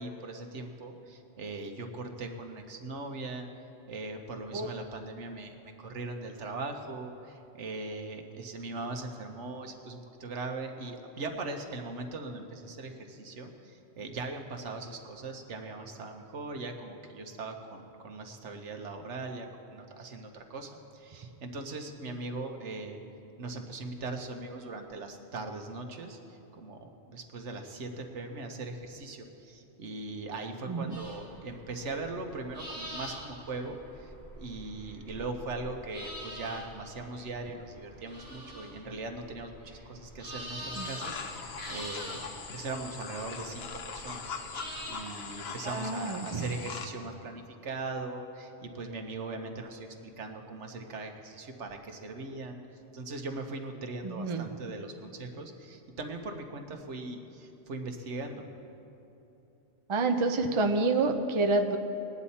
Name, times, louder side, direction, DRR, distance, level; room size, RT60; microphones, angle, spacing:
voice 1, 0.0-3.5 3.9-23.0 23.4-42.2 42.5-44.3 44.9-52.6 52.9-58.4, right 3 dB, 75° right, 4 dB, 1.3 m, -40 dB
voice 2, 30.7-31.0 40.7-40.9 45.6-46.5 54.0-54.6 59.9-61.8, right 3 dB, 35° right, 4 dB, 0.6 m, -28 dB
sound 1, 30.9-44.9, equal, 10° left, 3.5 m, -45 dB
sound 2, 40.7-46.9, left 5 dB, 60° left, 1.0 m, -41 dB
20.0 x 9.6 x 4.2 m, 3.0 s
omnidirectional pair, 1.2 m